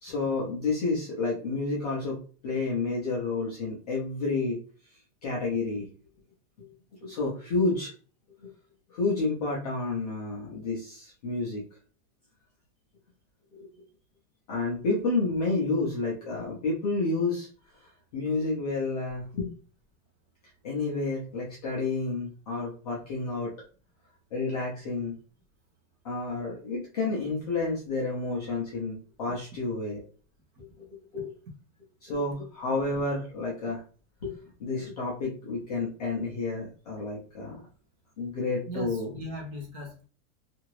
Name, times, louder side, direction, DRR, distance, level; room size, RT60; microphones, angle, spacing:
voice 1, 0.0-4.6 5.2-5.9 6.6-6.7 7.0-7.9 8.4-8.5 8.9-11.6 13.5-13.7 14.5-17.5 18.1-19.5 20.6-23.5 24.3-25.2 26.0-30.0 31.1-31.3 32.0-33.8 34.2-37.6 38.2-39.1, left 3 dB, 30° left, -5 dB, 0.4 m, -30 dB
voice 2, 38.7-40.1, equal, 30° right, -1 dB, 0.9 m, -39 dB
2.8 x 2.5 x 3.0 m, 0.38 s
supercardioid pair, 175°, 46 cm